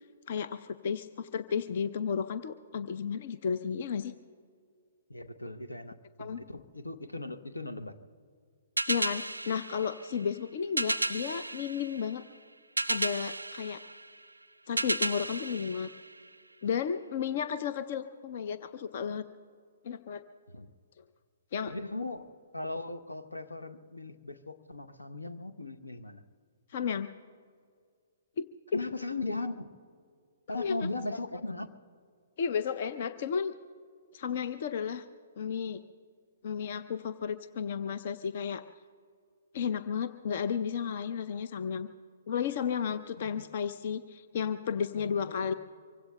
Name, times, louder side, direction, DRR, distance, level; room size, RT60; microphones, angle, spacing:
voice 1, 0.3-4.1 6.2-6.4 8.9-12.2 12.9-13.8 14.7-15.9 16.6-19.2 19.8-20.2 21.5-21.7 26.7-27.1 28.4-28.5 28.7-28.8 30.6-30.9 32.4-33.5 34.1-35.0 35.4-35.8 36.4-38.6 39.5-41.9 42.3-45.5, left 7 dB, 45° left, 12 dB, 0.5 m, -33 dB
voice 2, 5.1-8.0 20.5-20.7 21.7-22.3 22.5-26.2 28.7-29.7 30.5-31.7 43.2-43.5 45.0-45.5, left 2 dB, 80° left, 8 dB, 0.9 m, -38 dB
sound 1, 8.8-16.6, right 2 dB, 80° right, 0.4 m, -34 dB
25.0 x 24.0 x 2.2 m, 2.1 s
figure-of-eight pair, 120°, 0 cm